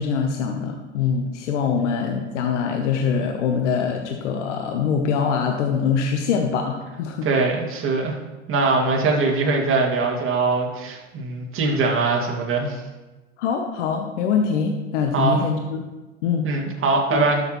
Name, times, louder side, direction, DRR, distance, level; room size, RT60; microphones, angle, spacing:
voice 1, 0.0-7.3 13.4-15.9 16.2-16.5 17.1-17.2, left 6 dB, 70° left, 3 dB, 1.0 m, -23 dB
voice 2, 7.2-8.2 8.5-12.8 15.1-15.4 16.4-17.4, right 3 dB, 35° right, 0 dB, 2.2 m, -22 dB
12.5 x 6.7 x 3.1 m, 1.2 s
hypercardioid pair, 95°, 37 cm